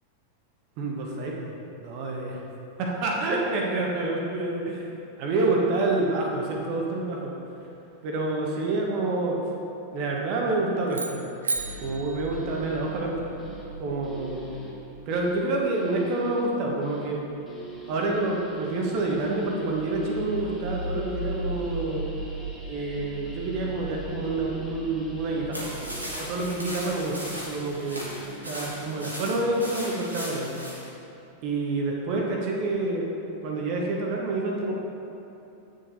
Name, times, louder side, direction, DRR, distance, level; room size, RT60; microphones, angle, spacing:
voice 1, 0.8-2.4 2.8-4.9 5.2-7.3 8.0-9.4 9.9-11.2 11.8-13.3 13.8-14.5 15.1-17.2 17.9-22.0 22.7-28.1 28.4-30.5 31.4-33.1 33.4-34.7, right 2 dB, 45° right, -1 dB, 1.1 m, -28 dB
sound 1, 10.9-13.2, right 3 dB, 70° right, 0.5 m, -34 dB
sound 2, 11.6-30.0, right 2 dB, 5° right, 1.5 m, -39 dB
sound 3, 25.5-30.9, equal, 90° right, 1.6 m, -37 dB
9.0 x 6.6 x 2.7 m, 2.8 s
figure-of-eight pair, 90°, 0 cm